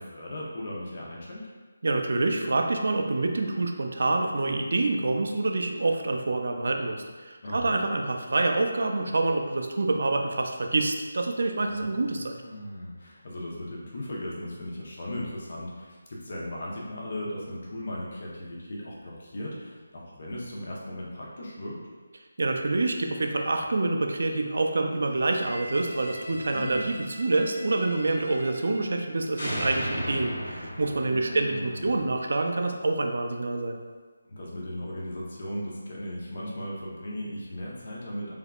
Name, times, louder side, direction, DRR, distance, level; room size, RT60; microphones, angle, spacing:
voice 1, 0.0-1.5 7.4-7.8 11.6-21.8 26.3-26.8 31.1-32.0 34.3-38.3, left 1 dB, 50° left, -4 dB, 0.8 m, -37 dB
voice 2, 1.8-12.4 22.4-33.8, right 2 dB, 65° right, 3 dB, 0.4 m, -27 dB
sound 1, 25.2-29.1 29.4-32.4, equal, 75° left, 1.1 m, -38 dB
3.5 x 3.5 x 2.4 m, 1.4 s
figure-of-eight pair, 170°, 0 cm